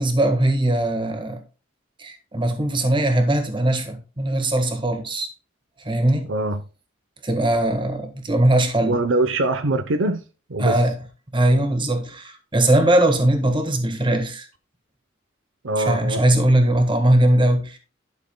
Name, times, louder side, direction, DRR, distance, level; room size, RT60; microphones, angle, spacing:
voice 1, 0.0-1.4 2.0-5.3 5.8-6.3 7.2-9.0 10.6-10.9 11.3-14.5 15.8-17.8, right 1 dB, 25° right, 1.5 m, -20 dB
voice 2, 6.3-6.6 8.8-10.2 10.5-10.8 15.6-16.2, right 2 dB, 70° right, 0.8 m, -23 dB
11.5 x 6.5 x 2.2 m
head